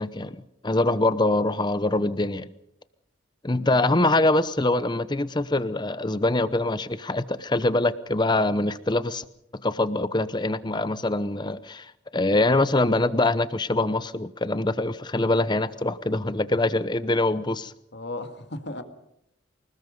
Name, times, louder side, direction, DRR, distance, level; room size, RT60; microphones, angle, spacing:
voice 1, 0.0-2.5 3.4-9.2 9.6-17.7, left 2 dB, 20° left, 0.8 m, -24 dB
voice 2, 3.5-3.8 17.9-18.8, left 2 dB, 55° left, 2.0 m, -36 dB
25.5 x 19.5 x 5.3 m
head